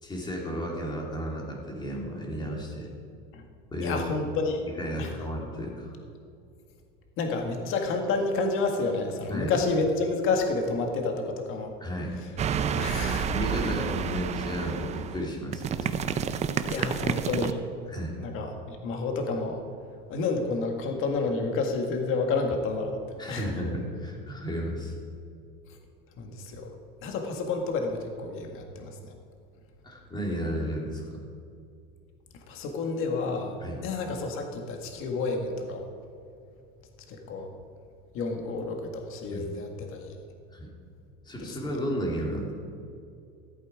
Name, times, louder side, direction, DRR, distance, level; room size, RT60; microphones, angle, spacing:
voice 1, 0.0-2.9 3.7-4.0 4.7-5.9 9.3-9.5 11.8-12.1 13.3-16.0 17.9-18.2 23.2-24.9 29.8-31.2 33.6-33.8 39.3-39.5 40.5-40.7 41.2-42.5, equal, 15° left, -1 dB, 2.5 m, -33 dB
voice 2, 3.8-4.7 5.0-5.1 7.2-11.7 12.8-13.3 16.7-17.6 18.2-19.6 20.1-23.0 23.3-23.5 26.2-26.8 27.0-29.1 32.5-35.9 37.1-37.6 38.1-40.2, left 3 dB, 45° left, 3 dB, 1.8 m, -30 dB
sound 1, 12.4-17.5, right 7 dB, 25° right, 0.5 m, -29 dB
15.0 x 8.3 x 4.8 m, 2.5 s
supercardioid pair, 135°, 29 cm